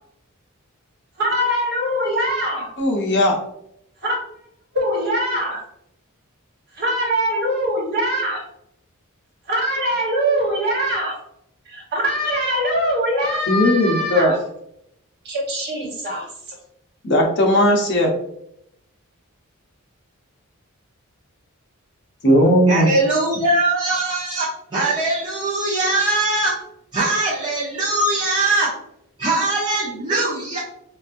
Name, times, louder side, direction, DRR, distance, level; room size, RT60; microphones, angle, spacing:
voice 1, 1.2-2.7 4.0-4.1 4.7-5.6 6.8-8.4 9.5-11.1 11.7-14.4 15.2-16.3, equal, 50° right, -3 dB, 1.3 m, -22 dB
voice 2, 2.8-3.4 13.5-14.3 17.0-18.1 22.2-22.9, equal, 55° left, 0 dB, 0.8 m, -17 dB
voice 3, 22.7-26.6 26.9-28.7 29.2-30.6, right 2 dB, 20° right, -9 dB, 0.8 m, -21 dB
4.0 x 2.5 x 2.6 m, 0.75 s
head